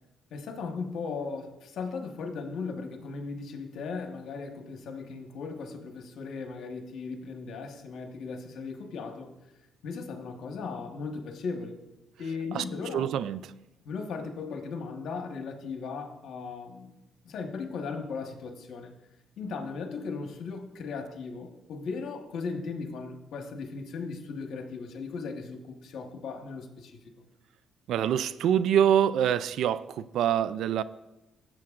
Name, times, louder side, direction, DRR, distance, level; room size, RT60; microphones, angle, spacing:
voice 1, 0.3-9.3 9.8-11.8 12.2-13.0 13.8-16.9 17.2-18.9 19.4-27.2, left 4 dB, 75° left, 4 dB, 1.2 m, -37 dB
voice 2, 12.9-13.5 27.9-30.8, right 9 dB, 80° right, 15 dB, 0.4 m, -25 dB
16.0 x 7.6 x 2.4 m, 0.98 s
cardioid pair, 90°, 0 cm